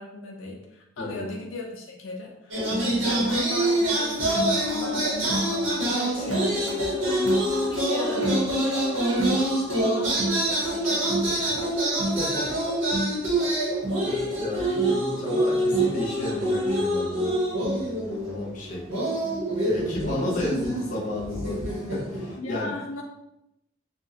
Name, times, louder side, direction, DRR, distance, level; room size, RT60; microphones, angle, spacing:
voice 1, 0.0-12.0 18.1-18.4 22.4-23.0, left 3 dB, 85° left, 0 dB, 0.4 m, -37 dB
voice 2, 1.0-1.3 12.2-12.4 13.3-13.5 14.0-17.3 17.7-18.8 19.6-22.7, left 1 dB, 40° left, -4 dB, 0.6 m, -32 dB
sound 1, 2.5-18.6 18.9-22.4, right 1 dB, 75° right, 0.9 m, -25 dB
2.7 x 2.1 x 2.6 m, 0.84 s
head